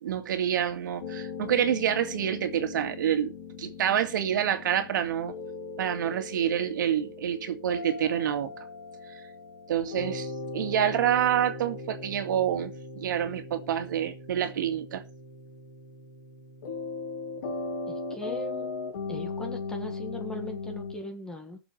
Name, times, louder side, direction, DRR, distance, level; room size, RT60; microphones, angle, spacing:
voice 1, 0.0-5.3 5.8-8.5 9.1-9.2 9.7-15.0, right 10 dB, 70° right, 2.0 m, -27 dB
sound 1, 1.0-20.9, left 3 dB, 65° left, 3.6 m, -39 dB
voice 2, 17.9-18.7 19.1-21.6, left 1 dB, 5° left, 1.6 m, -39 dB
20.5 x 6.9 x 3.3 m
supercardioid pair, 165°, 11 cm